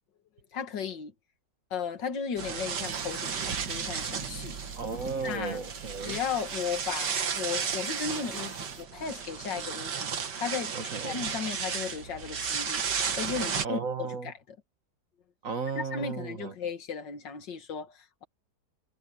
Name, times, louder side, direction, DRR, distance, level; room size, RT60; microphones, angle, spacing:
voice 1, 0.5-1.1 1.7-4.6 5.2-5.6 6.1-10.7 11.0-12.8 13.2-14.3 15.8-18.2, left 6 dB, 90° left, 2.3 m, -35 dB
sound 1, 2.4-13.6, right 6 dB, 70° right, 2.2 m, -34 dB
sound 2, 2.8-8.9, left 3 dB, 50° left, 3.2 m, -55 dB
voice 2, 4.8-6.2 10.7-11.3 13.6-14.3 15.4-16.5, right 5 dB, 50° right, 2.1 m, -35 dB
omnidirectional pair, 1.9 m